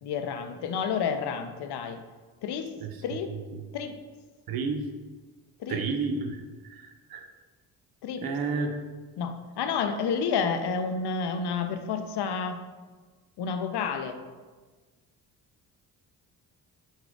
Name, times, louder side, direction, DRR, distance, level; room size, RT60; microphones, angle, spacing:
voice 1, 0.0-2.0 2.4-2.7 3.0-3.3 3.7-4.0 5.6-5.8 8.0-8.2 9.2-12.6 13.4-14.2, left 6 dB, 55° left, 8 dB, 0.6 m, -30 dB
voice 2, 4.5-4.9 5.7-6.4 6.7-7.3 8.2-8.8, right 4 dB, 50° right, 5 dB, 0.7 m, -30 dB
3.9 x 2.3 x 4.5 m, 1.3 s
supercardioid pair, 50°, 47 cm